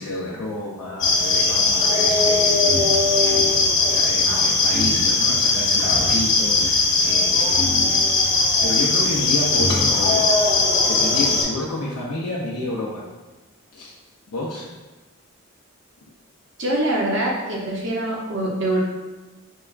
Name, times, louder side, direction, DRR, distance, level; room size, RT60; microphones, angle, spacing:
voice 1, 0.0-7.7 8.6-10.6 10.9-13.1 13.7-13.9 14.3-14.7, left 2 dB, 90° left, -4 dB, 0.5 m, -30 dB
sound 1, 1.0-11.4, left 3 dB, 50° left, 0.9 m, -19 dB
voice 2, 16.6-18.8, right 1 dB, 55° right, -3 dB, 0.7 m, -24 dB
4.6 x 2.2 x 2.3 m, 1.2 s
head